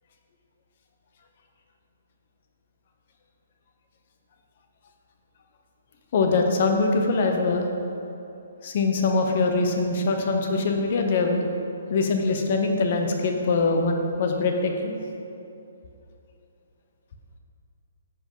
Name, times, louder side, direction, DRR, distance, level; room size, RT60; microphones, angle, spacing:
voice 1, 6.1-7.7 8.6-11.4 11.9-14.9, left 3 dB, 35° left, 3 dB, 0.7 m, -23 dB
9.9 x 5.3 x 3.8 m, 2.8 s
hypercardioid pair, 175°, 0 cm